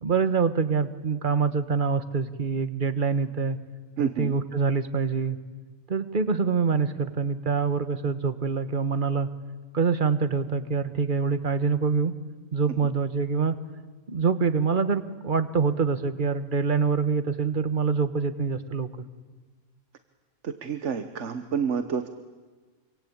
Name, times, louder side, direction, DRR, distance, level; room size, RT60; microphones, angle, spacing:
voice 1, 0.0-3.6 4.0-5.4 5.9-9.3 9.7-12.1 12.5-13.6 14.1-18.9, right 5 dB, 35° right, 11 dB, 1.4 m, -25 dB
voice 2, 4.0-4.4 20.4-22.1, right 7 dB, 55° right, 9 dB, 1.4 m, -28 dB
26.5 x 26.0 x 8.7 m, 1.4 s
omnidirectional pair, 1.5 m